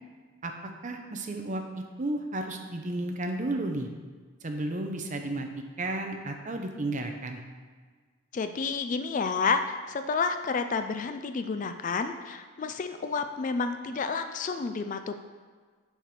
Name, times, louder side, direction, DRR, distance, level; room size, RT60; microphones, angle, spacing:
voice 1, 0.8-3.9 4.4-5.5 5.8-7.4, right 2 dB, 35° right, 4 dB, 0.7 m, -33 dB
voice 2, 8.3-15.2, left 4 dB, 35° left, 8 dB, 0.3 m, -30 dB
6.5 x 5.0 x 5.9 m, 1.5 s
head